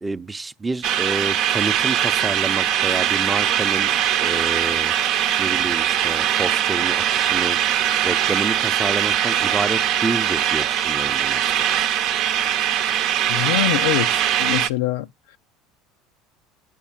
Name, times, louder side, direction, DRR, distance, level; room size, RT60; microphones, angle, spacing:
voice 1, 0.0-3.9 4.2-4.9 5.4-7.6 8.0-11.6, right 3 dB, 15° right, 0.7 m, -28 dB
sound 1, 0.8-14.7, right 10 dB, 60° right, 0.8 m, -21 dB
voice 2, 13.3-15.1, left 15 dB, 90° left, 0.5 m, -24 dB
9.2 x 4.2 x 7.3 m
supercardioid pair, 115°, 0 cm